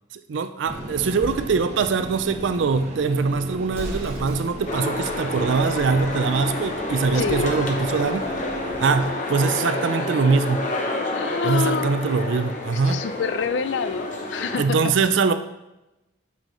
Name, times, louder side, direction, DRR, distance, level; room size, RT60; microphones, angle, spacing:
voice 1, 0.3-8.3 8.8-10.7 11.4-13.0 14.6-15.3, right 4 dB, 70° right, 10 dB, 0.4 m, -22 dB
sound 1, 0.6-9.1, right 1 dB, 35° right, 0.8 m, -35 dB
Explosion, 3.7-4.8, equal, 15° right, 1.6 m, -34 dB
sound 2, 4.7-14.6, left 1 dB, 40° left, 0.8 m, -29 dB
voice 2, 7.1-7.5 11.1-12.0 12.7-14.8, left 5 dB, 65° left, 14 dB, 0.3 m, -27 dB
9.0 x 5.4 x 3.1 m, 0.95 s
head